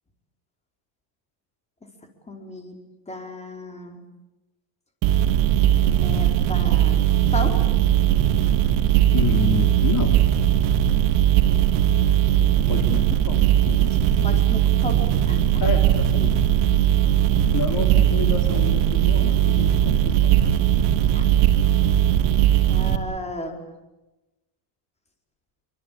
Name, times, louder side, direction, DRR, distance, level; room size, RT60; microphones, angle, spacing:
voice 1, 2.3-2.8 3.1-4.0 5.8-7.0 7.3-7.7 14.2-15.0 15.3-15.6 21.1-21.3 22.7-23.7, left 1 dB, 15° left, 3 dB, 4.7 m, -34 dB
sound 1, 5.0-23.0, right 11 dB, 75° right, 3.0 m, -19 dB
voice 2, 9.1-10.2 12.7-14.3 15.6-16.3 17.5-20.4, left 5 dB, 40° left, 4 dB, 3.5 m, -29 dB
26.5 x 25.5 x 8.7 m, 1.0 s
cardioid pair, 140°, 49 cm